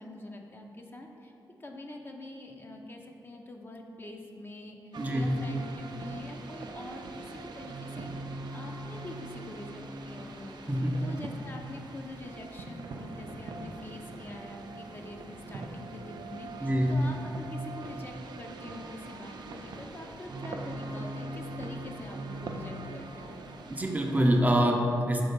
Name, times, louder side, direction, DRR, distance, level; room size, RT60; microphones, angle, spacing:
voice 1, 0.0-1.3 1.6-23.4, left 1 dB, 30° left, 1 dB, 0.6 m, -45 dB
sound 1, 4.9-24.4, right 2 dB, 70° right, 0.5 m, -42 dB
voice 2, 5.0-5.3 10.7-11.0 16.6-17.0 23.7-25.2, equal, 20° right, 1 dB, 0.6 m, -25 dB
5.4 x 3.8 x 5.1 m, 2.7 s
cardioid pair, 85°, 8 cm